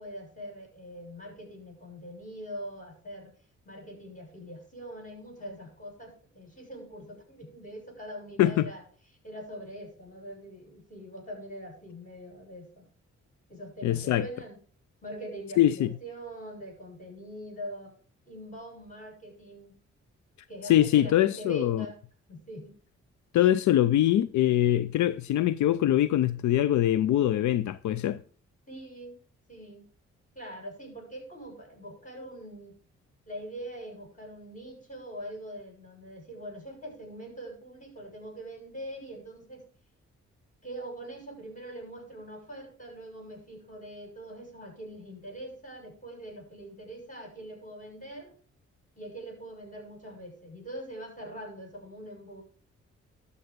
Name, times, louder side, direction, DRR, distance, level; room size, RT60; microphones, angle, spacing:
voice 1, 0.0-3.3 3.6-8.8 9.2-12.8 13.5-14.6 15.0-17.9 18.3-19.7 20.5-22.0 22.3-22.8 28.7-29.2 29.5-29.9 30.4-32.8 33.3-39.6 40.6-48.3 49.0-52.4, right 1 dB, 25° left, 7.1 m, -43 dB
voice 2, 13.8-14.3 15.6-15.9 20.7-21.8 23.3-28.2, left 12 dB, 80° left, 0.5 m, -23 dB
12.0 x 6.9 x 5.2 m
cardioid pair, 75°, 29 cm